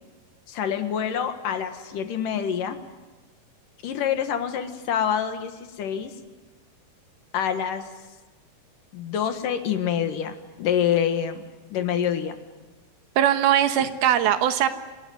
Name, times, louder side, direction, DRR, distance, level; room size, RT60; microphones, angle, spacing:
voice 1, 0.5-2.8 3.8-6.1 7.3-7.8 8.9-11.4 11.7-12.4 13.8-13.9, left 8 dB, 65° left, 8 dB, 3.1 m, -26 dB
voice 2, 13.2-14.7, right 10 dB, 85° right, 10 dB, 3.2 m, -20 dB
26.0 x 20.5 x 9.5 m, 1.2 s
omnidirectional pair, 4.3 m